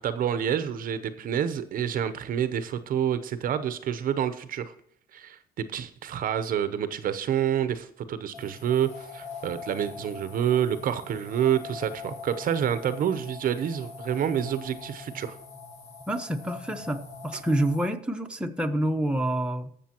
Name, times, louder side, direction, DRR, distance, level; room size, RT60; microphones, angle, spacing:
voice 1, 0.0-4.7 5.1-15.4, right 9 dB, 55° right, 12 dB, 0.8 m, -28 dB
sound 1, 8.3-17.9, left 4 dB, 45° left, 2.3 m, -42 dB
voice 2, 16.1-19.7, right 1 dB, 5° right, 4 dB, 0.9 m, -27 dB
20.0 x 6.9 x 2.9 m, 0.67 s
cardioid pair, 110°, 17 cm